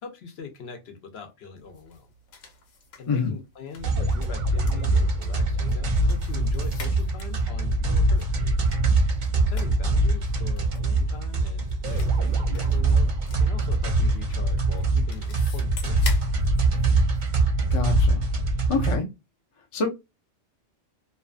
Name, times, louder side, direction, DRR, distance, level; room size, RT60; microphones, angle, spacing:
voice 1, 0.0-2.1 3.0-8.3 9.5-13.1 13.4-16.4, left 5 dB, 65° left, 0.8 m, -42 dB
sound 1, 1.6-17.7, left 5 dB, 90° left, 1.1 m, -46 dB
sound 2, 3.8-19.0, right 2 dB, 50° right, 0.6 m, -23 dB
voice 2, 17.7-18.2 18.7-19.1 19.7-19.9, left 5 dB, 45° left, 0.4 m, -25 dB
2.7 x 2.2 x 2.3 m
omnidirectional pair, 1.2 m